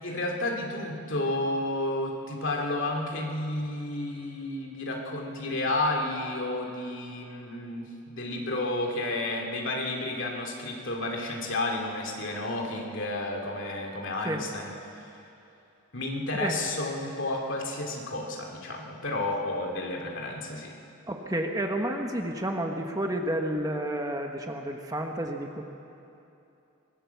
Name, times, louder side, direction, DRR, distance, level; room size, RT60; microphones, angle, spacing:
voice 1, 0.0-14.7 15.0-15.1 15.9-20.8, left 2 dB, 55° left, 1 dB, 2.7 m, -31 dB
voice 2, 21.1-25.6, right 1 dB, 15° right, 3 dB, 1.2 m, -30 dB
24.0 x 18.5 x 7.1 m, 2.8 s
head